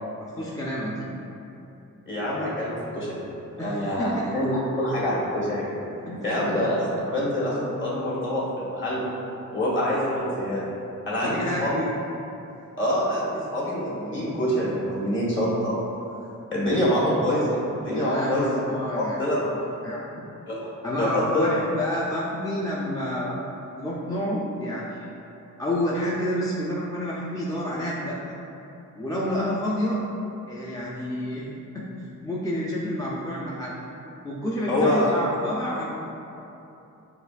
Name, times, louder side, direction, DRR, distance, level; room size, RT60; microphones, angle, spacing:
voice 1, 0.2-1.1 3.6-4.3 6.1-6.2 11.2-11.7 17.9-20.2 20.8-25.1 25.6-28.2 29.0-30.0 30.5-31.5 31.7-31.9 32.2-33.8 34.2-36.0, equal, 10° left, -6 dB, 0.4 m, -29 dB
voice 2, 2.1-3.2 3.6-5.6 6.2-9.0 9.5-10.6 11.1-11.9 12.8-15.8 16.5-18.6 19.0-19.4 20.5-20.6 20.9-21.5 34.7-35.2, left 1 dB, 35° left, -6 dB, 1.5 m, -25 dB
6.7 x 2.4 x 2.5 m, 2.9 s
cardioid pair, 100°, 33 cm